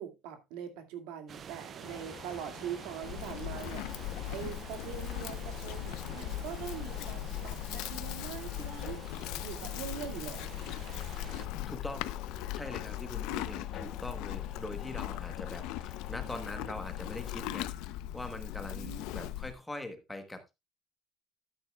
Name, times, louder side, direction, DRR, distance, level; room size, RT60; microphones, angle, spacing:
voice 1, 0.0-9.0 9.4-10.5 18.7-19.3, right 9 dB, 85° right, 2.1 m, -43 dB
sound 1, 1.3-11.5, right 7 dB, 30° right, 0.4 m, -49 dB
sound 2, 1.8-17.5, left 8 dB, 40° left, 1.4 m, -49 dB
Livestock farm animals working animals, 3.0-19.5, left 14 dB, 70° left, 0.7 m, -39 dB
voice 2, 11.7-17.7 18.1-20.5, left 2 dB, 5° left, 1.1 m, -43 dB
13.0 x 9.1 x 2.3 m
cardioid pair, 180°, 0 cm